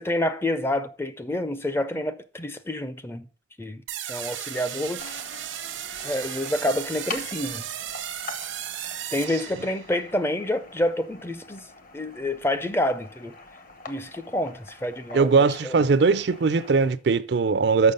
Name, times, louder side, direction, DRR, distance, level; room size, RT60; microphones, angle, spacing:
voice 1, 0.0-3.3 3.6-3.8 4.1-5.0 6.0-7.6 9.1-11.6 11.9-13.3 13.9-15.8, left 1 dB, 15° left, 0.5 m, -28 dB
sound 1, 3.9-10.0, right 10 dB, 85° right, 0.9 m, -35 dB
sound 2, 5.0-16.9, left 3 dB, 45° left, 1.0 m, -44 dB
voice 2, 15.1-17.9, right 4 dB, 60° right, 0.4 m, -20 dB
6.8 x 5.9 x 5.3 m
head